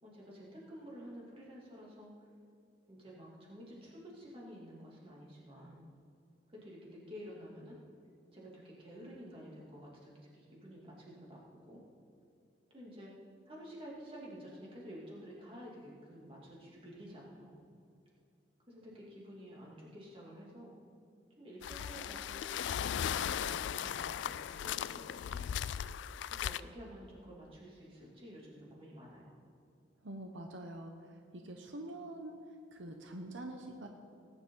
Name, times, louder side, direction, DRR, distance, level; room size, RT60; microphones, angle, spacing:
voice 1, 0.0-2.1 2.9-5.9 6.5-7.8 8.3-11.8 12.7-13.1 13.5-17.6 18.7-20.7 21.4-25.6 26.4-29.2, equal, 30° right, -5 dB, 2.7 m, -51 dB
sound 1, 21.6-26.6, left 9 dB, 70° left, 0.3 m, -37 dB
voice 2, 30.0-30.9 31.3-32.4 32.7-33.9, right 1 dB, 80° right, 4 dB, 0.9 m, -45 dB
18.5 x 10.0 x 3.9 m, 2.6 s
head